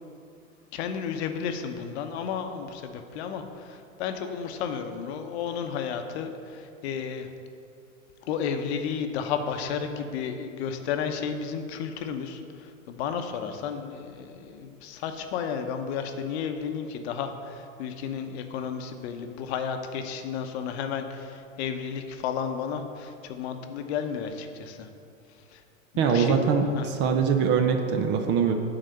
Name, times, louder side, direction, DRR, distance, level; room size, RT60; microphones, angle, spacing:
voice 1, 0.7-7.3 8.2-24.9 25.5-25.6 25.9-26.4 26.7-26.9, left 7 dB, 55° left, 7 dB, 0.8 m, -32 dB
voice 2, 26.0-28.5, right 6 dB, 30° right, 5 dB, 0.5 m, -23 dB
7.7 x 4.1 x 6.7 m, 2.5 s
hypercardioid pair, 125°, 39 cm